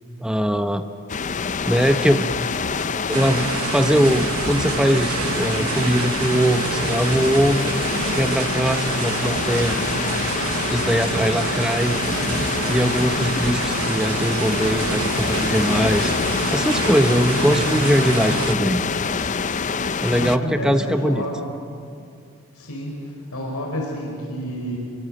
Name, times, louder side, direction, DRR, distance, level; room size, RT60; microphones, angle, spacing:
voice 1, 0.2-0.8 1.6-2.3 3.1-7.7 8.1-9.8 10.7-12.0 12.7-16.1 16.5-18.8 20.0-21.3, equal, 5° right, 7 dB, 0.8 m, -21 dB
sound 1, 1.1-20.4, left 5 dB, 35° left, 0.5 m, -26 dB
sound 2, 3.1-18.5, right 5 dB, 70° right, 1.2 m, -28 dB
voice 2, 20.2-21.4 22.5-24.8, equal, 85° left, -1 dB, 5.0 m, -30 dB
27.5 x 24.0 x 7.7 m, 2.4 s
head